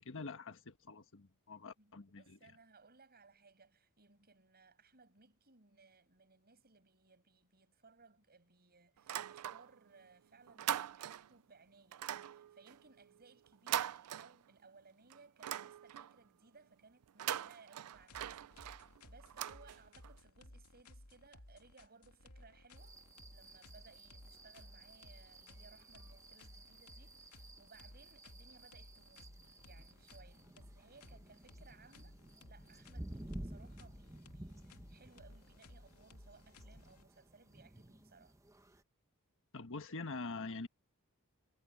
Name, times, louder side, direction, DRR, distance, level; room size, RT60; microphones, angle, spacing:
voice 1, 0.0-2.4 39.5-40.7, left 3 dB, 60° left, 1.4 m, -45 dB
voice 2, 1.8-23.0 23.3-29.3 29.6-38.4, right 4 dB, 45° right, 7.9 m, -64 dB
sound 1, 9.0-9.9 10.2-11.4 11.9-14.8 15.1-16.2 17.0-20.2, right 11 dB, 85° right, 0.4 m, -42 dB
sound 2, 17.9-37.4, left 1 dB, 85° left, 2.7 m, -58 dB
sound 3, 22.8-38.8, right 1 dB, 15° right, 1.0 m, -54 dB
head